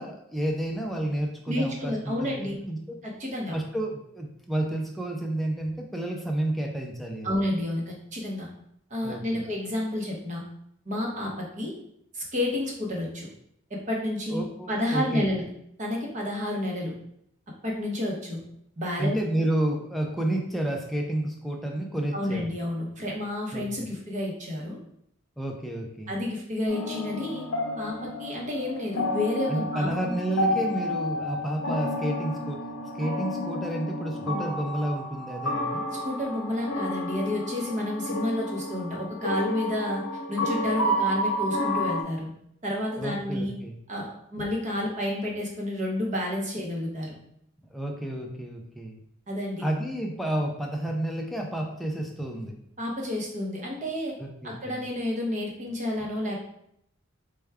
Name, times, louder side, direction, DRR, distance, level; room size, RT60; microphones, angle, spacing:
voice 1, 0.0-3.0 3.5-7.3 9.0-9.5 14.3-15.3 19.0-22.5 23.5-23.9 25.4-26.1 29.5-32.6 33.0-35.9 43.0-43.8 47.6-49.0 49.6-52.6 54.2-54.8, right 1 dB, ahead, 0 dB, 0.4 m, -30 dB
voice 2, 1.5-2.6 3.0-3.6 7.2-8.5 8.9-10.4 10.9-11.7 12.1-13.3 13.7-14.4 14.7-15.4 15.8-16.9 17.6-18.4 18.8-19.2 22.1-24.8 26.1-27.4 27.8-30.1 36.0-40.0 40.3-42.3 42.6-43.5 43.9-47.2 49.3-49.6 52.8-54.1 54.4-56.5, left 1 dB, 35° right, -2 dB, 0.8 m, -30 dB
sound 1, 26.7-42.0, left 1 dB, 75° left, 0.7 m, -31 dB
4.4 x 2.3 x 3.4 m, 0.73 s
head